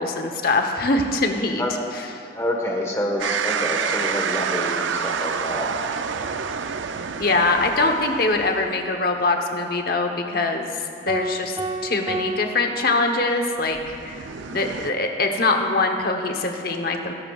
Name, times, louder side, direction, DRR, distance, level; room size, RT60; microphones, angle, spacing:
voice 1, 0.0-1.7 1.9-2.1 7.2-10.7 11.0-11.6 11.8-17.1, left 2 dB, 55° left, 4 dB, 1.0 m, -23 dB
voice 2, 2.3-5.7, equal, 15° left, 0 dB, 1.3 m, -27 dB
sound 1, 3.2-8.7 13.7-14.9, right 6 dB, 90° right, 0.5 m, -28 dB
sound 2, 11.1-13.5, right 2 dB, 25° right, 0.7 m, -32 dB
19.0 x 11.0 x 2.4 m, 2.5 s
head